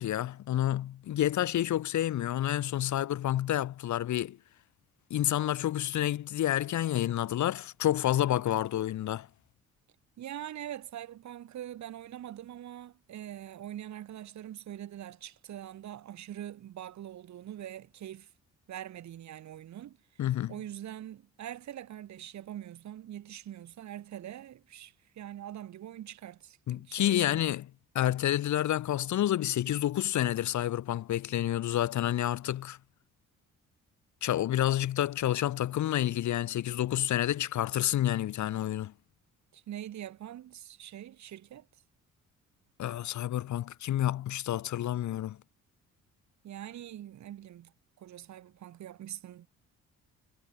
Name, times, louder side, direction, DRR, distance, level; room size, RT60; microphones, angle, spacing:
voice 1, 0.0-4.4 5.1-9.3 20.2-20.6 26.7-27.7 28.0-32.8 34.2-38.9 42.8-45.4, left 12 dB, 70° left, 1.9 m, -29 dB
voice 2, 10.2-18.3 18.7-20.0 20.5-26.6 26.9-27.6 39.5-41.7 46.4-47.7 48.0-49.5, right 11 dB, 65° right, 1.9 m, -43 dB
cardioid pair, 90°, 30 cm